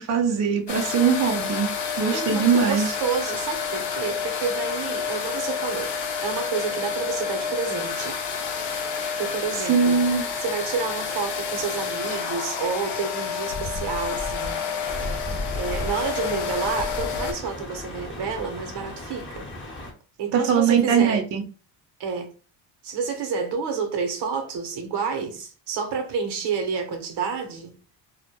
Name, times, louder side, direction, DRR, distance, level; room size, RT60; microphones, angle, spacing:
voice 1, 0.0-1.7 2.0-3.0 9.7-10.2 20.3-21.4, right 6 dB, 40° right, 0.4 m, -21 dB
sound 1, 0.7-17.3, left 6 dB, 60° left, 0.7 m, -29 dB
voice 2, 2.1-5.9 6.2-8.2 9.2-10.0 10.4-14.6 15.6-19.5 20.2-21.2 22.0-22.3 22.8-27.7, right 5 dB, 60° right, 0.8 m, -29 dB
sound 2, 14.9-19.9, left 2 dB, 25° left, 0.8 m, -38 dB
2.1 x 2.1 x 2.9 m
cardioid pair, 110°, 45 cm